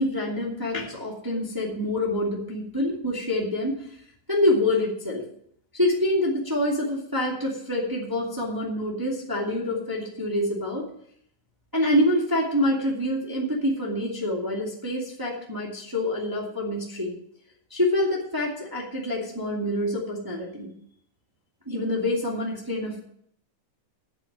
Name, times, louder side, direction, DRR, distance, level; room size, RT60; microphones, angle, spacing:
voice 1, 0.0-3.9 4.3-5.2 5.7-10.8 11.7-17.2 17.7-20.7 21.7-23.0, left 1 dB, 10° right, -2 dB, 1.8 m, -26 dB
8.8 x 7.8 x 8.7 m, 0.67 s
omnidirectional pair, 3.8 m